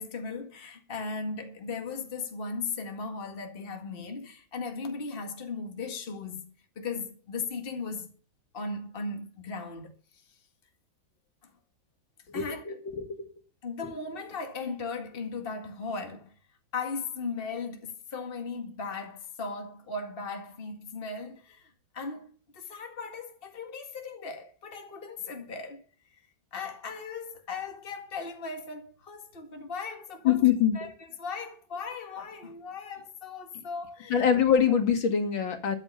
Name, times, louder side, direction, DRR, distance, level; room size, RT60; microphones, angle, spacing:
voice 1, 0.0-8.1 8.5-10.4 11.4-11.5 12.3-12.8 13.6-16.3 16.7-25.8 26.2-30.4 30.7-30.9 31.2-34.2, left 4 dB, 30° left, 2.0 m, -37 dB
voice 2, 12.7-13.3 30.2-30.8 34.1-35.8, left 8 dB, 75° left, 2.9 m, -24 dB
13.0 x 8.9 x 6.8 m
omnidirectional pair, 2.1 m